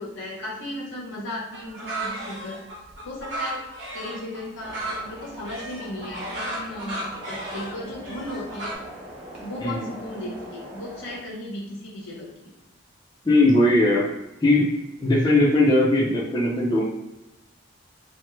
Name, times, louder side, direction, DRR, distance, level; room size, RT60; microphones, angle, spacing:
voice 1, 0.0-2.6 3.0-3.6 3.9-8.8 9.4-12.3, left 1 dB, 75° left, -4 dB, 1.2 m, -35 dB
sound 1, 1.5-8.8, right 1 dB, 70° right, 0.8 m, -34 dB
sound 2, 4.6-11.2, equal, 45° right, 0.9 m, -42 dB
voice 2, 13.2-14.1 14.4-14.7 15.0-16.8, left 1 dB, 20° left, -6 dB, 0.5 m, -19 dB
3.1 x 2.1 x 3.2 m, 0.94 s
head